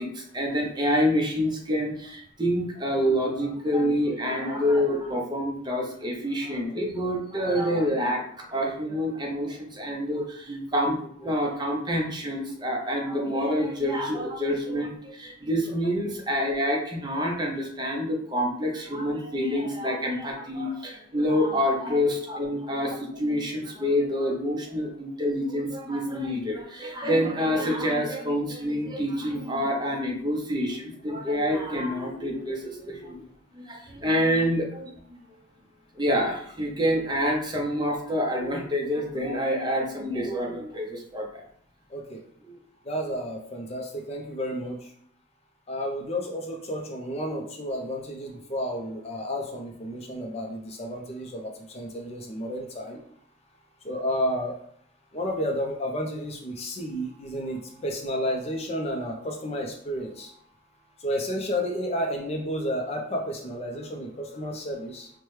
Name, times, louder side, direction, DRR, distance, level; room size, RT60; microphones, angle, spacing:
voice 1, 0.0-33.2 33.5-35.2 36.0-41.4 42.4-42.6, equal, 20° right, 0 dB, 0.7 m, -27 dB
voice 2, 41.9-42.2 42.8-44.9 45.7-53.0 53.8-54.6 55.1-60.3 61.0-65.1, equal, 30° left, 1 dB, 0.5 m, -31 dB
4.5 x 2.2 x 3.2 m, 0.65 s
head